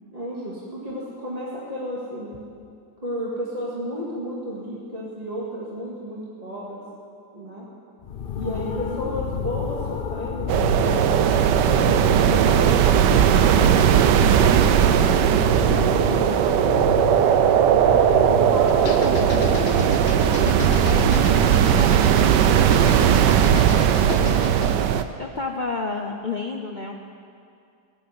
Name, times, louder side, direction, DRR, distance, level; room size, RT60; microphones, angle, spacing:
voice 1, 0.1-2.4 3.0-6.8 7.3-7.7 8.4-11.4 12.1-15.1 15.7-16.8 17.8-19.7 20.4-23.0 23.8-24.4, equal, 25° right, -5 dB, 2.1 m, -33 dB
sound 1, 8.0-24.0, left 7 dB, 90° left, 0.4 m, -31 dB
voice 2, 8.4-9.1 15.7-16.2 24.2-24.5 25.2-26.9, left 4 dB, 45° left, 2 dB, 0.6 m, -31 dB
sound 2, 10.5-25.0, right 9 dB, 90° right, 1.3 m, -18 dB
sound 3, 18.7-24.8, left 6 dB, 65° left, 1.4 m, -36 dB
15.5 x 8.5 x 9.6 m, 2.4 s
omnidirectional pair, 1.8 m